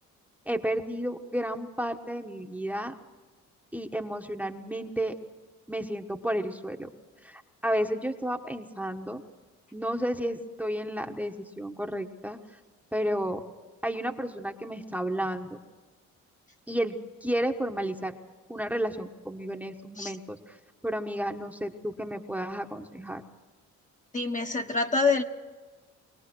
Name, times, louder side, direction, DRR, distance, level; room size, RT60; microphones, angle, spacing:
voice 1, 0.4-2.9 3.7-5.1 5.7-6.9 7.2-9.2 9.7-12.4 12.9-13.4 13.8-15.6 16.7-18.1 18.5-20.6 20.8-23.2, equal, 5° right, 3 dB, 1.3 m, -32 dB
voice 2, 24.1-25.2, left 4 dB, 25° left, 4 dB, 1.4 m, -26 dB
24.5 x 18.0 x 6.3 m, 1.3 s
cardioid pair, 90°, 30 cm